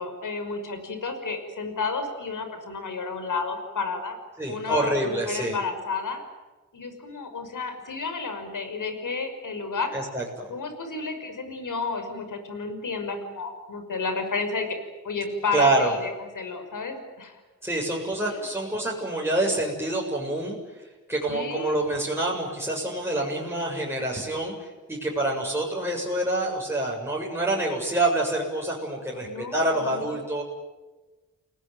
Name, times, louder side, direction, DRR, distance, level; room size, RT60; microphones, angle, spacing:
voice 1, 0.0-4.2 4.5-6.2 6.7-9.9 10.5-14.7 15.0-17.4 18.3-18.4 21.3-21.7 29.2-30.1, left 4 dB, 75° left, 8 dB, 5.7 m, -32 dB
voice 2, 4.4-5.6 9.9-10.5 15.5-15.9 17.6-20.6 21.1-30.4, right 1 dB, 10° right, -2 dB, 7.3 m, -26 dB
29.5 x 19.5 x 9.3 m, 1.2 s
wide cardioid pair, 80°, 31 cm